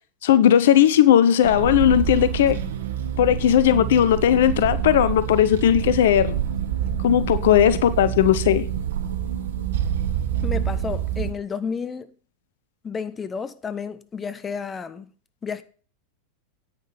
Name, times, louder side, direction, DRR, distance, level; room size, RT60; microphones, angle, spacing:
voice 1, 0.2-2.6 3.2-6.3 7.0-8.7, left 10 dB, 65° left, 0.9 m, -17 dB
sound 1, 1.4-11.3, right 9 dB, 70° right, 1.6 m, -27 dB
voice 2, 10.4-12.1 12.8-15.1 15.4-15.6, left 6 dB, 20° left, 1.2 m, -31 dB
9.8 x 9.4 x 5.1 m
hypercardioid pair, 90°, 0 cm